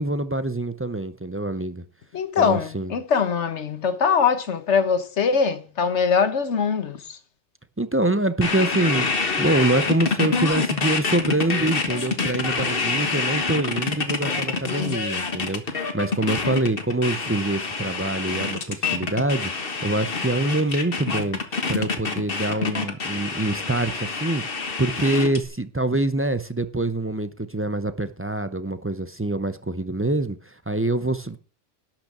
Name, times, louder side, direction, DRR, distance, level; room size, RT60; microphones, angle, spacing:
voice 1, 0.0-1.8 2.4-2.9 7.8-9.1 9.4-21.4 21.7-31.4, right 2 dB, 20° right, 0.4 m, -25 dB
voice 2, 2.1-7.2, left 6 dB, 70° left, 1.5 m, -22 dB
sound 1, 8.4-25.4, left 4 dB, 50° left, 1.6 m, -26 dB
12.0 x 6.0 x 7.4 m
omnidirectional pair, 1.2 m